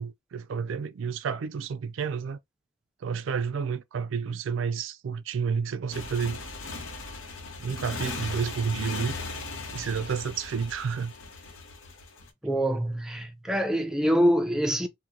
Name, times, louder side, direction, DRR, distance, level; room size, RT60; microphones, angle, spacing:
voice 1, 0.0-2.4 3.0-6.4 7.6-9.2 9.7-11.1, right 6 dB, 75° right, 0.3 m, -30 dB
Motorcycle, 5.9-12.3, left 3 dB, 85° left, 0.8 m, -38 dB
voice 2, 12.4-14.9, equal, 5° right, 0.4 m, -25 dB
2.8 x 2.2 x 3.6 m
head